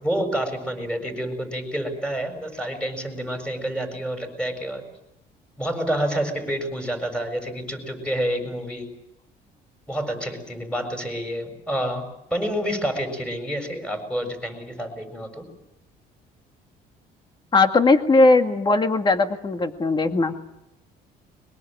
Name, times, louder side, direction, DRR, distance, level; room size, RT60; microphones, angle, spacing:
voice 1, 0.0-4.8 5.6-8.9 9.9-12.0 12.3-15.5, equal, 5° left, 6 dB, 7.2 m, -28 dB
voice 2, 17.5-20.3, left 3 dB, 25° left, 6 dB, 2.0 m, -19 dB
23.0 x 22.0 x 9.2 m, 0.85 s
cardioid pair, 110°, 17 cm